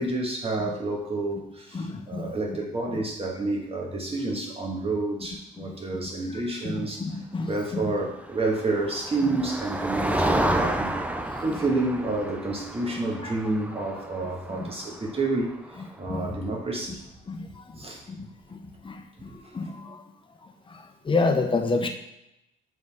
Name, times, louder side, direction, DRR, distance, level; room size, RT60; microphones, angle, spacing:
voice 1, 0.0-7.0 7.5-10.9 11.4-15.5 16.0-17.0 17.7-18.0 19.3-19.6, right 2 dB, 30° right, 0 dB, 1.6 m, -29 dB
voice 2, 1.7-2.6 2.9-3.0 5.6-5.8 6.3-7.9 10.0-10.1 11.3-11.6 13.2-13.3 14.5-14.7 16.1-16.6 17.3-20.0 20.4-21.9, left 3 dB, 25° left, 5 dB, 0.8 m, -31 dB
Motor vehicle (road), 8.2-16.0, right 1 dB, 5° right, 0.5 m, -31 dB
7.0 x 3.9 x 3.6 m, 0.84 s
cardioid pair, 90°, 20 cm